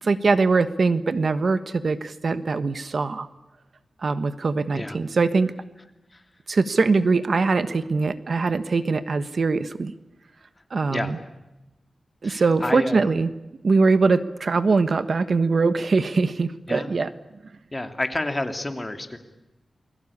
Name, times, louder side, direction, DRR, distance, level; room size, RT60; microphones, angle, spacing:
voice 1, 0.0-3.3 4.0-5.5 6.5-9.9 10.7-11.2 12.2-13.3 13.6-17.1, right 4 dB, 60° right, 12 dB, 1.3 m, -22 dB
voice 2, 12.2-13.0 16.7-16.9 17.7-19.2, left 2 dB, 20° left, 6 dB, 2.8 m, -29 dB
28.5 x 21.5 x 8.6 m, 1.0 s
wide cardioid pair, 110°, 0 cm